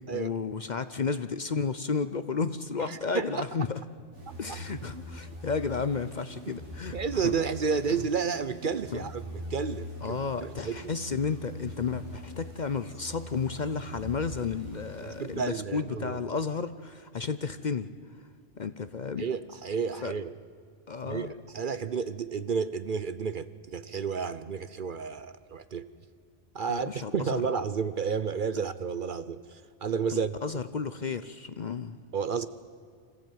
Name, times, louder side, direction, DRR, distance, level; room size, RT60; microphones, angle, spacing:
voice 1, 0.0-3.8 4.4-7.4 8.9-9.1 10.0-17.9 18.6-19.2 20.0-20.1 20.9-21.3 26.7-27.4 30.1-32.0, left 5 dB, 45° left, 13 dB, 0.7 m, -32 dB
voice 2, 2.9-3.4 6.9-9.2 9.5-10.7 15.0-16.2 19.2-20.3 21.1-25.9 26.5-30.4 32.1-32.5, right 6 dB, 50° right, 14 dB, 0.8 m, -31 dB
sound 1, 4.1-15.9, left 1 dB, 85° right, 4.4 m, -43 dB
25.5 x 15.5 x 9.3 m, 2.1 s
omnidirectional pair, 1.2 m